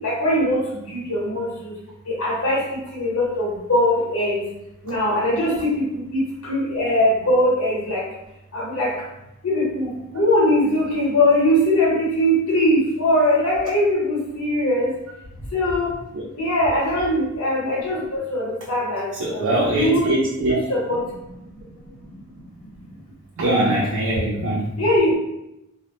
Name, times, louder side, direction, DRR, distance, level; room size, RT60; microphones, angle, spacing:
voice 1, 0.0-0.6 0.9-1.7 2.2-2.6 3.0-4.4 4.8-5.9 6.1-6.2 6.5-8.0 8.5-8.9 9.4-14.9 15.5-15.9 16.4-19.5 19.8-20.1 20.7-21.0 24.8-25.2, left 1 dB, 75° left, -5 dB, 0.9 m, -21 dB
voice 2, 19.2-20.6 23.4-24.7, right 1 dB, 80° right, -4 dB, 0.4 m, -22 dB
2.1 x 2.1 x 2.8 m, 0.88 s
head